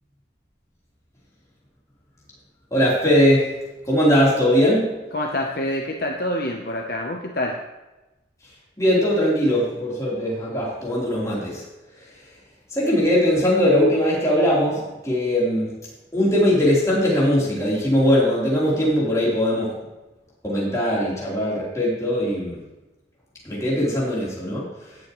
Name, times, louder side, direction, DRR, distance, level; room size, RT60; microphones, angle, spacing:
voice 1, 2.7-3.6 3.8-5.0 8.8-11.7 12.7-15.8 16.1-19.8 20.4-22.6 23.4-24.7, equal, 15° left, -7 dB, 3.6 m, -20 dB
voice 2, 5.1-7.6, left 1 dB, 55° left, 1 dB, 0.8 m, -26 dB
17.5 x 7.3 x 3.1 m, 1.1 s
head